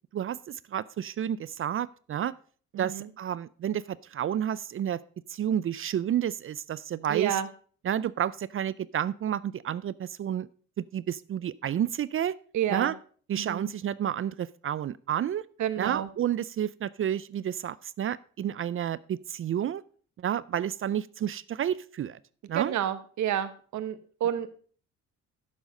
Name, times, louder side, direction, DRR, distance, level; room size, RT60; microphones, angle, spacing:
voice 1, 0.1-2.3 2.8-5.0 5.3-7.4 7.8-10.5 10.8-12.3 12.7-13.0 13.3-15.4 15.8-19.8 20.2-22.2 22.5-22.7, right 10 dB, 45° right, 20 dB, 0.4 m, -30 dB
voice 2, 2.7-3.1 7.1-7.5 12.5-12.9 13.3-13.7 15.6-16.1 22.5-24.5, right 10 dB, 70° right, 12 dB, 1.1 m, -29 dB
10.5 x 7.3 x 5.2 m, 0.44 s
cardioid pair, 90°, 30 cm